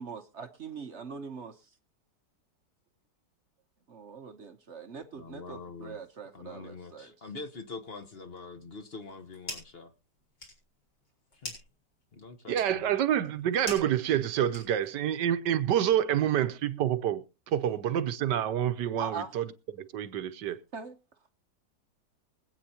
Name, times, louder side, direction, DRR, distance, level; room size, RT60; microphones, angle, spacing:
voice 1, 0.0-1.7 3.9-7.3 19.0-19.3 20.7-21.0, right 5 dB, 50° right, 0.9 m, -42 dB
voice 2, 5.1-6.0 6.3-9.9 11.4-11.6 12.1-12.9, left 4 dB, 35° left, 1.2 m, -44 dB
sound 1, 9.0-9.8 10.2-15.1, left 1 dB, 60° left, 5.4 m, -45 dB
voice 3, 12.5-19.5 19.8-20.6, right 10 dB, 70° right, 1.3 m, -28 dB
23.5 x 8.6 x 2.9 m
omnidirectional pair, 2.1 m